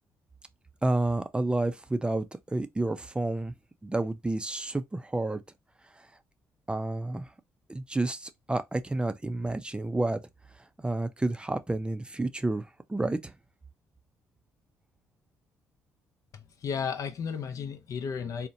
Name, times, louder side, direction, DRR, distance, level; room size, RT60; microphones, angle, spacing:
voice 1, 0.8-3.5 3.8-5.4 6.7-7.3 7.7-10.2 10.8-13.3, right 2 dB, 15° right, 0.4 m, -30 dB
voice 2, 16.3-18.5, left 6 dB, 60° left, 0.5 m, -34 dB
2.7 x 2.1 x 2.6 m
supercardioid pair, 55°, 7 cm